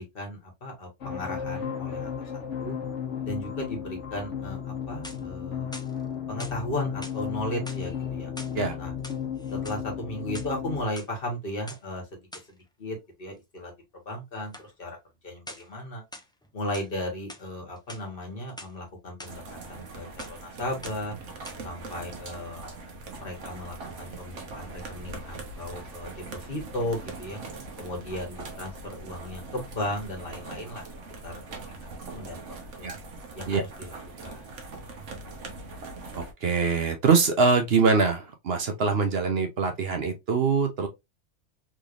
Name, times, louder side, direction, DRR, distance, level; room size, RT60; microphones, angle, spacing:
voice 1, 0.0-2.8 3.2-5.7 6.3-8.3 8.8-8.9 9.5-12.2 12.5-13.7 14.0-15.0 15.2-16.0 16.5-21.2 21.6-22.7 23.2-27.4 27.8-30.8 31.2-32.4 32.8-32.9 33.3-33.6 33.9-34.0 34.2-34.4, left 1 dB, 50° left, 1.5 m, -36 dB
sound 1, 1.0-10.8, left 8 dB, 85° left, 1.3 m, -34 dB
sound 2, 4.8-5.4 5.7-6.6 7.0-7.2 7.6-8.6 8.9-9.8 10.2-11.1 11.7-11.8 12.3-12.5 14.5-14.7 15.5-15.8 16.1-16.9 17.3-17.5 17.8-18.7 19.2-19.3 19.7-19.9 20.2-20.5 20.8-21.1 21.4-21.6, left 1 dB, 5° left, 0.3 m, -44 dB
sound 3, 19.3-36.3, right 3 dB, 85° right, 1.3 m, -41 dB
voice 2, 36.1-40.9, right 4 dB, 60° right, 0.9 m, -23 dB
3.7 x 3.2 x 2.5 m
omnidirectional pair, 1.2 m